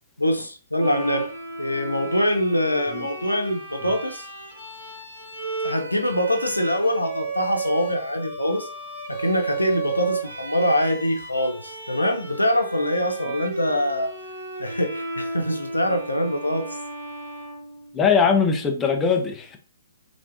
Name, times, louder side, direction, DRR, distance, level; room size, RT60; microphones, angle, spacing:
voice 1, 0.2-1.3 1.6-4.3 5.6-8.7 9.1-14.1 14.6-16.7, equal, 90° left, 4 dB, 0.6 m, -24 dB
Bowed string instrument, 0.8-18.2, right 3 dB, 70° right, 1.6 m, -34 dB
voice 2, 17.9-19.6, left 6 dB, 15° left, 3 dB, 0.5 m, -20 dB
3.3 x 2.5 x 2.5 m, 0.38 s
figure-of-eight pair, 125°, 0 cm